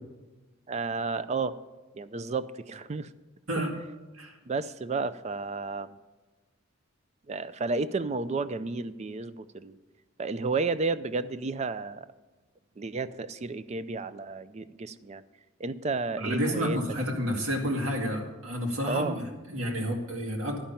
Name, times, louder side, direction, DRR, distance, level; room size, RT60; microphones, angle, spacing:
voice 1, 0.7-1.6 1.9-3.1 4.5-5.9 7.3-9.7 10.2-12.1 12.8-15.2 15.6-16.8 18.8-19.2, right 4 dB, 35° right, 14 dB, 0.4 m, -32 dB
voice 2, 16.2-20.6, equal, 80° right, 0 dB, 2.2 m, -30 dB
11.5 x 5.6 x 8.9 m, 1.2 s
head